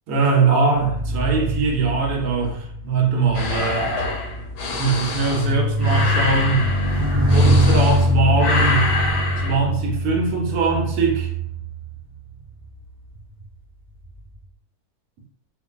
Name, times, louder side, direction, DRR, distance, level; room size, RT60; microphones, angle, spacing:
voice 1, 0.1-3.9 4.7-6.7 7.3-8.9 9.4-11.3, right 4 dB, 75° right, 0 dB, 1.0 m, -21 dB
sound 1, 0.8-12.4 13.1-13.4, equal, 35° right, 0.9 m, -23 dB
sound 2, 3.3-8.1 8.4-9.6, left 3 dB, 85° left, 1.2 m, -26 dB
2.5 x 2.3 x 2.2 m, 0.66 s
omnidirectional pair, 1.7 m